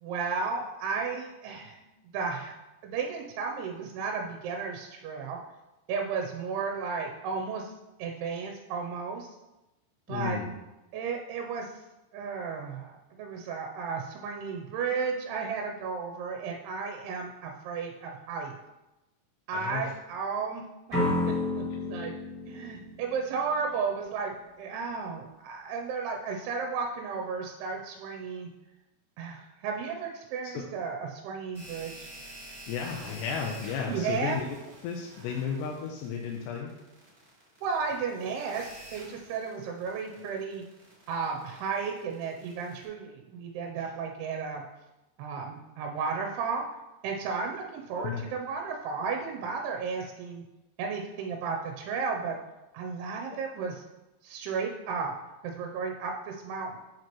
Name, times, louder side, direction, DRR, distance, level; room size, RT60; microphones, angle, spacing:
voice 1, 0.0-1.8 2.1-2.5 2.8-5.4 5.9-7.7 8.0-9.4 10.1-10.4 10.9-11.7 12.1-18.6 19.5-21.0 21.6-22.1 22.5-24.3 24.6-28.5 29.2-32.1 33.9-34.4 37.6-40.6 41.1-44.6 45.2-46.7 47.0-50.4 50.8-52.4 52.7-53.8 54.2-55.1 55.4-56.8, right 5 dB, 80° right, 2 dB, 2.5 m, -33 dB
voice 2, 10.1-10.5 19.5-19.9 30.5-30.7 32.7-34.4 34.8-36.7 43.8-43.9 48.0-48.2 53.3-53.4, left 6 dB, 85° left, 0 dB, 2.8 m, -34 dB
sound 1, 20.9-23.8, left 2 dB, 10° left, 0.5 m, -31 dB
sound 2, 31.5-42.8, equal, 20° right, 1.8 m, -49 dB
7.5 x 6.0 x 3.0 m, 1.0 s
omnidirectional pair, 4.8 m